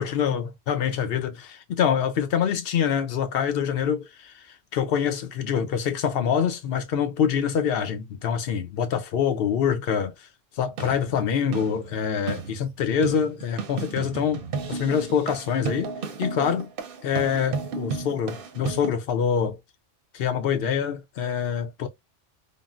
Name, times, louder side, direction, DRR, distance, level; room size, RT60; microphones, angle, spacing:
voice 1, 0.0-4.4 4.7-10.3 10.6-14.4 14.7-15.9 16.2-16.7 17.0-19.6 20.1-21.9, left 7 dB, 60° left, 0.7 m, -25 dB
sound 1, 10.6-18.9, right 5 dB, 60° right, 0.7 m, -34 dB
3.6 x 2.0 x 2.3 m
omnidirectional pair, 1.2 m